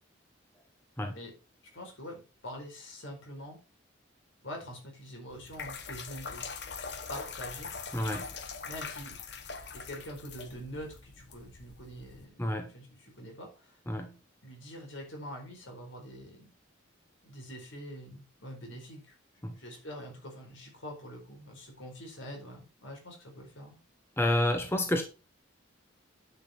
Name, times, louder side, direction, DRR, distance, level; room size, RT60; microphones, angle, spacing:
voice 1, 1.7-3.6 4.4-6.5 7.1-8.0 8.6-9.2 9.7-13.8 14.4-16.5 17.2-19.1 19.5-23.8, equal, 70° left, 1 dB, 4.6 m, -45 dB
sound 1, 5.3-12.3, left 5 dB, 55° left, 1.1 m, -42 dB
voice 2, 7.9-8.3 12.4-12.7 13.9-14.1 19.4-19.6 24.2-25.0, left 1 dB, 10° left, 5 dB, 0.9 m, -29 dB
10.0 x 6.0 x 4.4 m, 0.31 s
head